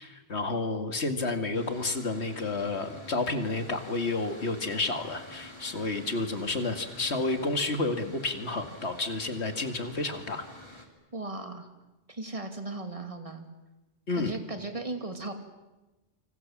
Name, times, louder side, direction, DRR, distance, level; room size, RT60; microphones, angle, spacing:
voice 1, 0.0-10.5 14.1-14.3, left 3 dB, 70° left, 7 dB, 2.5 m, -30 dB
Mechanical fan, 1.5-10.9, left 1 dB, 25° left, 3.5 m, -48 dB
voice 2, 11.1-11.7 12.1-13.5 14.2-15.3, right 2 dB, 30° right, 6 dB, 2.7 m, -37 dB
28.5 x 25.5 x 7.4 m, 1.1 s
omnidirectional pair, 1.2 m